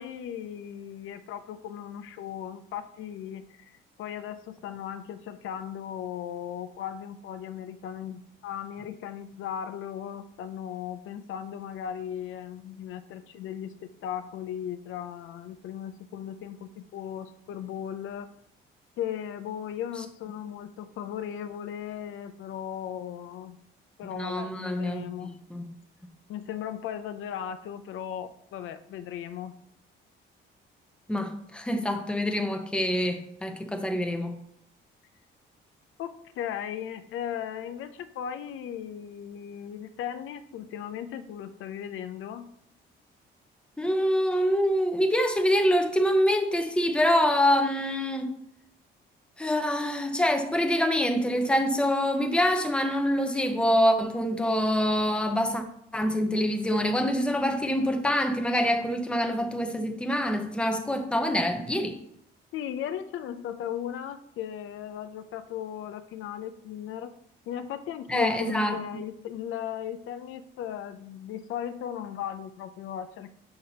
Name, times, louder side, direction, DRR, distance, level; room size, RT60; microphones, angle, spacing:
voice 1, 0.0-18.3 19.0-23.6 24.0-25.4 26.3-29.6 36.0-42.5 62.5-67.1 67.5-73.3, left 9 dB, 80° left, 0.5 m, -37 dB
voice 2, 24.1-25.7 31.1-34.4 43.8-48.3 49.4-55.6 55.9-62.0 68.1-69.0, equal, 5° left, 0.7 m, -25 dB
6.5 x 5.6 x 2.8 m
cardioid pair, 130°, 21 cm